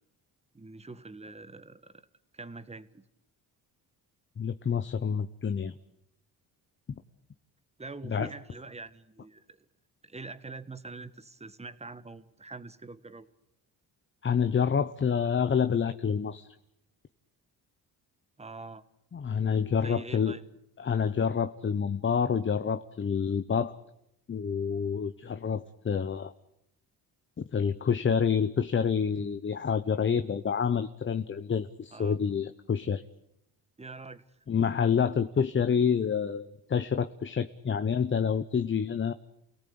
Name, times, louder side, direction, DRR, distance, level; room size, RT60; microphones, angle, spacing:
voice 1, 0.5-2.1 2.3-3.0 7.8-9.7 10.0-13.3 18.4-18.8 19.8-20.4 31.9-32.2 33.8-34.4, right 3 dB, 15° right, 13 dB, 1.4 m, -44 dB
voice 2, 4.4-5.7 6.9-7.0 8.1-8.3 14.2-16.5 19.1-20.4 20.8-23.7 24.3-26.3 27.5-33.0 34.5-39.1, left 7 dB, 30° left, 10 dB, 0.9 m, -28 dB
29.0 x 18.0 x 8.7 m, 0.80 s
cardioid pair, 110°, 39 cm